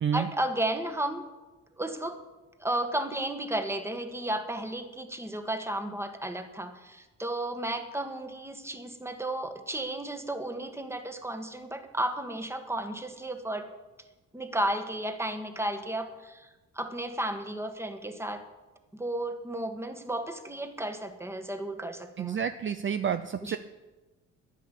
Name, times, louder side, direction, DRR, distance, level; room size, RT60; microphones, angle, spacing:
voice 1, 0.1-1.2 1.8-2.2 2.6-13.7 14.3-16.5 16.7-18.4 18.9-22.4 23.4-23.6, right 1 dB, 10° right, 7 dB, 1.5 m, -33 dB
voice 2, 22.2-23.6, right 8 dB, 40° right, 10 dB, 0.6 m, -29 dB
10.5 x 10.5 x 8.3 m, 1.2 s
cardioid pair, 90°, 30 cm